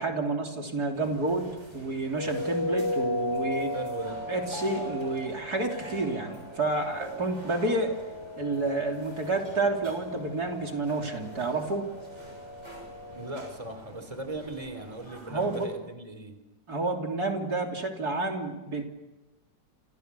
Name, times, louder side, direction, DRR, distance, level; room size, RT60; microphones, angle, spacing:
voice 1, 0.0-3.7 4.3-8.0 8.4-11.9 15.3-15.7 16.7-18.8, right 2 dB, 55° right, 2 dB, 3.7 m, -29 dB
sound 1, 0.9-15.7, right 1 dB, 35° right, 7.3 m, -47 dB
sound 2, 2.1-13.5, left 2 dB, 15° left, 1.3 m, -36 dB
voice 2, 3.7-4.2 13.1-16.4, right 2 dB, 15° right, 8 dB, 3.3 m, -38 dB
29.5 x 28.5 x 6.9 m, 1.0 s
omnidirectional pair, 2.0 m